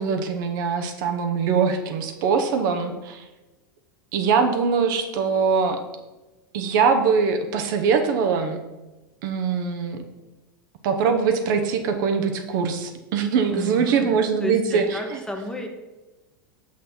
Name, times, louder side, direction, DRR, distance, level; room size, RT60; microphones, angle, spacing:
voice 1, 0.0-3.2 4.1-5.8 6.5-8.6 9.2-10.0 10.8-15.2, right 5 dB, 65° right, 6 dB, 0.9 m, -22 dB
voice 2, 13.5-14.1 14.4-15.7, left 1 dB, 5° left, 3 dB, 1.1 m, -32 dB
6.3 x 5.9 x 4.3 m, 1.1 s
hypercardioid pair, 95°, 12 cm